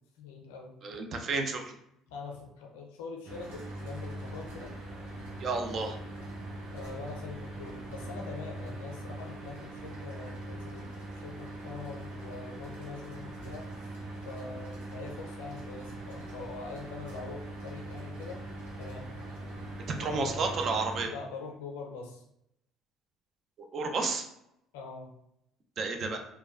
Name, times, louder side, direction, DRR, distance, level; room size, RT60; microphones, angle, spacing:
voice 1, 0.2-0.7 2.1-4.7 6.7-13.8 14.2-18.4 18.8-19.1 20.0-20.6 21.0-22.2 24.7-25.1, left 4 dB, 85° left, 1 dB, 0.4 m, -43 dB
voice 2, 0.8-1.7 5.4-6.0 20.0-21.1 23.7-24.2 25.8-26.2, right 4 dB, 55° right, 4 dB, 0.4 m, -31 dB
Mechanical fan, 3.2-21.0, right 1 dB, 85° right, 0.9 m, -42 dB
3.0 x 2.2 x 2.4 m, 0.78 s
hypercardioid pair, 60°, 0 cm